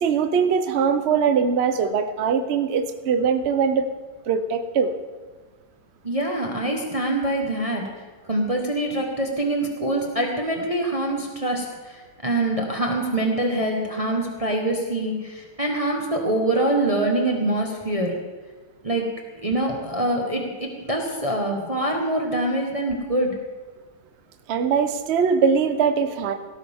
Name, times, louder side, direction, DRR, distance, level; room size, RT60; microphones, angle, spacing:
voice 1, 0.0-3.9 4.3-4.9 24.5-26.3, right 6 dB, 70° right, 7 dB, 0.6 m, -21 dB
voice 2, 6.0-7.9 8.3-18.2 18.8-19.1 19.4-23.4, right 1 dB, 20° right, 1 dB, 1.0 m, -24 dB
17.0 x 13.0 x 3.6 m, 1.4 s
omnidirectional pair, 2.3 m